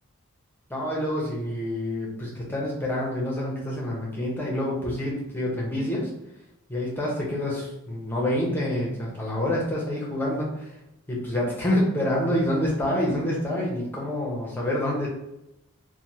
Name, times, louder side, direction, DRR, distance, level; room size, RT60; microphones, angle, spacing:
voice 1, 0.7-6.1 6.7-10.7 11.1-15.1, left 1 dB, 10° left, -4 dB, 0.7 m, -27 dB
3.3 x 2.2 x 2.8 m, 0.87 s
head